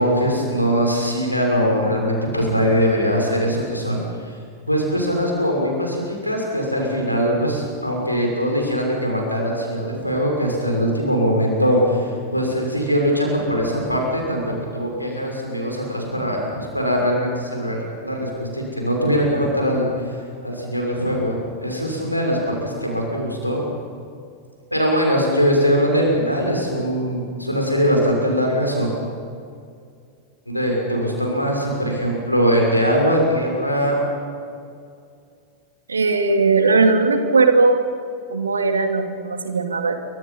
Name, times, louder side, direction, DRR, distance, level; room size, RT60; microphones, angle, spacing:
voice 1, 0.0-4.0 4.7-19.9 20.4-23.6 24.7-28.9 30.5-34.0, equal, 90° left, 0 dB, 6.2 m, -21 dB
voice 2, 35.9-37.8 38.3-40.0, right 3 dB, 75° right, 6 dB, 2.3 m, -18 dB
28.5 x 25.0 x 5.7 m, 2.3 s
figure-of-eight pair, 90°, 0 cm